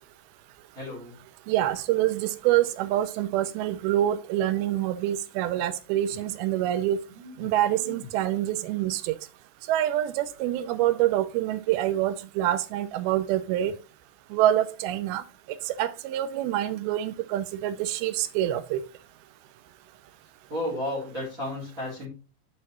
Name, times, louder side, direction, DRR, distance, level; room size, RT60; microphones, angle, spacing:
voice 1, 0.7-1.1 7.1-7.4 7.7-8.0 20.5-22.1, left 1 dB, 25° right, 3.2 m, -33 dB
voice 2, 1.5-7.0 7.4-9.2 9.7-13.7 14.3-15.2 15.8-18.8, right 13 dB, 90° right, 2.5 m, -26 dB
8.7 x 5.3 x 2.9 m
omnidirectional pair, 4.3 m